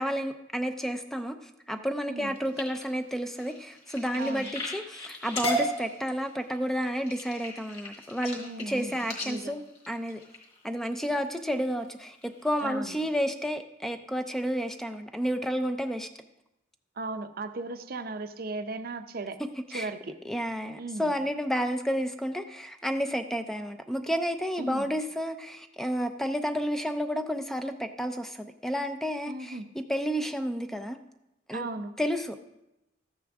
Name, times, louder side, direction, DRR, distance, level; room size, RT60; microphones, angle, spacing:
voice 1, 0.0-8.4 8.7-10.2 10.6-16.1 19.7-19.9 20.3-31.0 31.5-31.7 32.0-32.5, equal, ahead, 7 dB, 0.5 m, -31 dB
sound 1, 2.2-10.9 11.5-11.8 12.2-12.6 13.0-13.1 13.5-13.6, equal, 30° left, 2.6 m, -36 dB
voice 2, 4.2-4.5 8.4-9.6 12.6-13.0 17.0-19.4 19.7-20.1 20.8-21.1 24.6-24.9 29.3-29.7 31.5-31.9, right 3 dB, 50° right, 9 dB, 0.6 m, -37 dB
13.5 x 9.4 x 3.6 m, 0.91 s
head